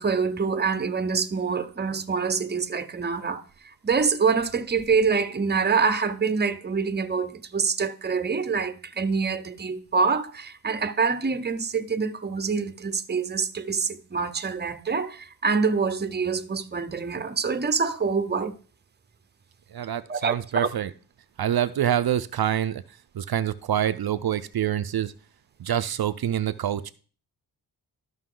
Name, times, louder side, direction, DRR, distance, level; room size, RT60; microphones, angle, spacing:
voice 1, 0.0-18.6 20.1-20.7, right 5 dB, 25° right, 0.7 m, -26 dB
voice 2, 19.7-20.9 21.4-22.8 23.1-25.1 25.6-26.9, right 10 dB, 60° right, 0.6 m, -26 dB
13.0 x 5.4 x 3.8 m
cardioid pair, 80°, 41 cm